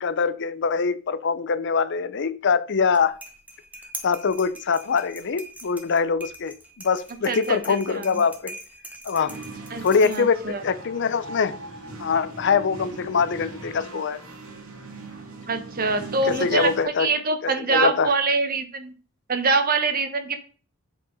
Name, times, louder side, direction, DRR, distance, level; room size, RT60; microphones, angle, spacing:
voice 1, 0.0-3.2 4.0-8.6 9.0-9.3 9.8-11.6 12.0-14.2 16.2-17.1 17.4-18.1, left 5 dB, 55° left, 14 dB, 0.6 m, -23 dB
sound 1, 2.8-10.5, right 1 dB, 5° right, 1.5 m, -42 dB
voice 2, 7.3-8.1 9.7-10.6 15.5-16.7 17.0-18.9 19.3-20.4, right 3 dB, 45° right, 8 dB, 1.1 m, -24 dB
sound 2, 9.3-16.8, right 2 dB, 85° right, 2.2 m, -40 dB
8.0 x 4.7 x 5.2 m, 0.38 s
head